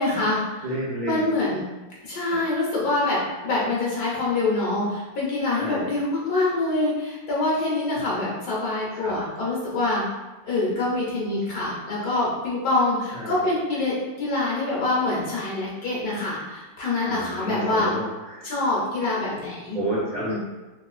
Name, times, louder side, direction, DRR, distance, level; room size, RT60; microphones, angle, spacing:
voice 1, 0.0-0.6 1.0-1.6 2.0-10.0 10.4-17.9 18.4-19.8 20.3-20.4, left 2 dB, 60° left, -5 dB, 1.3 m, -25 dB
voice 2, 0.6-1.2 2.3-2.4 5.5-5.9 8.9-9.2 13.1-13.5 17.0-18.5 19.7-20.4, right 1 dB, 70° right, -9 dB, 0.4 m, -30 dB
3.7 x 2.8 x 2.3 m, 1.2 s
omnidirectional pair, 2.0 m